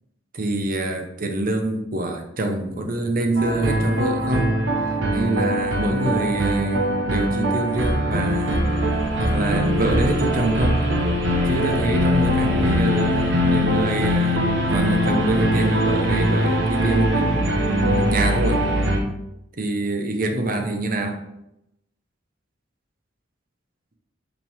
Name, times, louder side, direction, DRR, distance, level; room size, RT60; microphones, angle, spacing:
voice 1, 0.3-4.6 4.9-8.7 9.2-10.9 11.4-18.6 19.6-21.2, right 2 dB, 45° right, 5 dB, 0.8 m, -26 dB
sound 1, 3.4-19.0, equal, 70° right, 1.2 m, -21 dB
5.7 x 5.4 x 3.6 m, 0.85 s
head